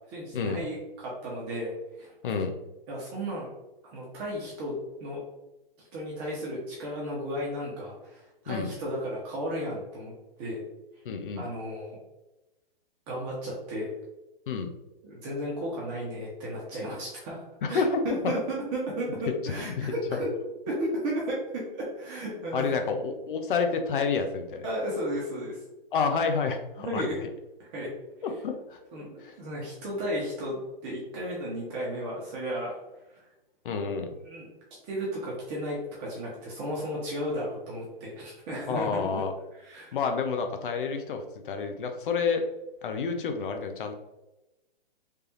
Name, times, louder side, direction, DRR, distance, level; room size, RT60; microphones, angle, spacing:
voice 1, 0.1-2.4 2.9-3.5 3.8-5.2 5.9-10.6 11.4-12.0 13.1-13.9 15.0-20.3 20.7-22.7 24.6-25.6 26.8-27.2 27.6-27.9 28.9-32.8 33.1-33.3 34.2-34.5 34.8-39.2 39.5-39.9, equal, 30° right, -4 dB, 1.0 m, -34 dB
voice 2, 11.0-11.5 14.5-14.7 17.6-18.0 19.4-19.9 22.5-24.7 25.9-27.3 28.2-28.8 29.2-29.3 33.6-34.1 38.7-39.3 39.9-42.4 42.8-43.9, left 5 dB, 60° left, 5 dB, 0.8 m, -29 dB
3.4 x 3.4 x 2.9 m, 0.99 s
hypercardioid pair, 130°, 29 cm